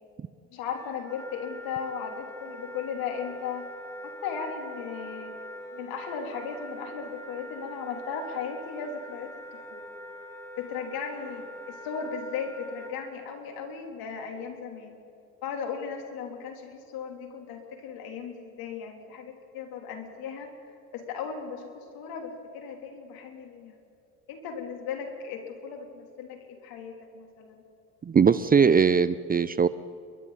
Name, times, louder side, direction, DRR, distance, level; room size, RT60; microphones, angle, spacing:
voice 1, 0.5-3.7 4.2-5.4 5.7-9.9 10.6-14.9 15.4-20.5 20.9-23.8 24.3-27.6, left 6 dB, 65° left, 2 dB, 3.7 m, -36 dB
Wind instrument woodwind instrument, 0.7-12.9, right 1 dB, 5° left, 4.7 m, -43 dB
voice 2, 28.1-29.7, right 6 dB, 25° right, 15 dB, 0.6 m, -20 dB
29.5 x 22.5 x 4.2 m, 2.6 s
hypercardioid pair, 75°, 38 cm